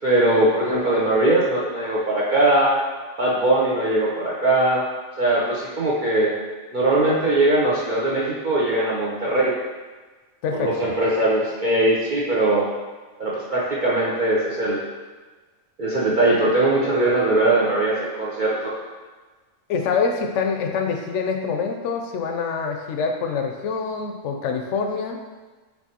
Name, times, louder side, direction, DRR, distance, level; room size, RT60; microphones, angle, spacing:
voice 1, 0.0-2.8 3.2-4.8 5.2-6.3 6.7-9.5 10.6-12.7 13.2-14.8 15.8-18.7, right 1 dB, 50° right, -7 dB, 0.7 m, -20 dB
voice 2, 10.4-10.9 19.7-25.2, left 5 dB, 70° left, 4 dB, 0.8 m, -25 dB
4.5 x 4.1 x 2.8 m, 1.3 s
omnidirectional pair, 1.4 m